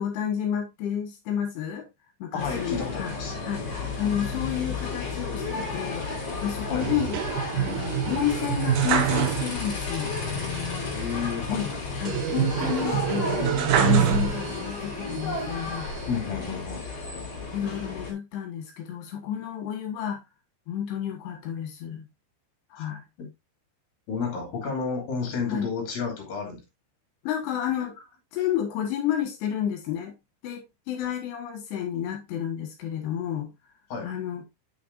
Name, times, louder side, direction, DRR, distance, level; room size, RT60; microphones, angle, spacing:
voice 1, 0.0-1.9 2.2-3.1 3.4-6.1 6.4-10.2 11.5-11.7 12.0-15.9 17.5-20.2 20.7-22.1 22.7-23.0 25.5-25.7 27.2-28.0 28.3-30.1 30.4-33.5 34.0-34.4, left 10 dB, 75° left, 3.6 m, -30 dB
voice 2, 2.3-3.4 6.7-6.9 10.9-12.1 16.1-16.9 23.2-23.3 24.1-26.6 33.9-34.1, left 5 dB, 55° left, 4.3 m, -31 dB
sound 1, 2.4-18.1, left 4 dB, 35° left, 4.2 m, -33 dB
sound 2, 6.8-9.9 10.2-10.3 12.1-14.8 15.3-16.2, right 9 dB, 70° right, 1.9 m, -26 dB
8.9 x 7.0 x 2.6 m
omnidirectional pair, 5.1 m